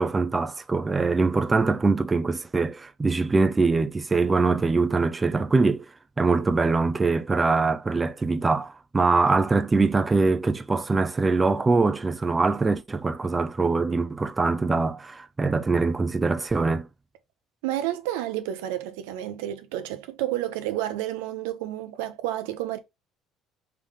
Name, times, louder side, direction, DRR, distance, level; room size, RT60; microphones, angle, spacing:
voice 1, 0.0-5.9 6.2-16.9, right 3 dB, 25° right, 0.5 m, -23 dB
voice 2, 17.6-22.8, right 13 dB, 80° right, 0.6 m, -30 dB
3.8 x 3.4 x 3.3 m
hypercardioid pair, 65°, 0 cm